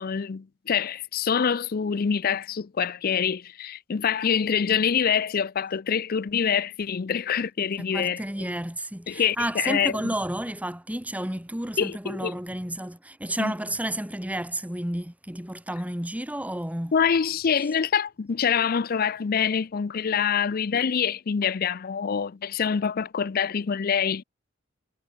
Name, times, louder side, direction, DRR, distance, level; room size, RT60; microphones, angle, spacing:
voice 1, 0.0-8.2 9.1-9.9 11.8-12.3 13.4-13.5 16.9-24.2, left 7 dB, 50° left, 0.5 m, -25 dB
voice 2, 7.8-16.9, right 1 dB, 5° right, 1.8 m, -31 dB
head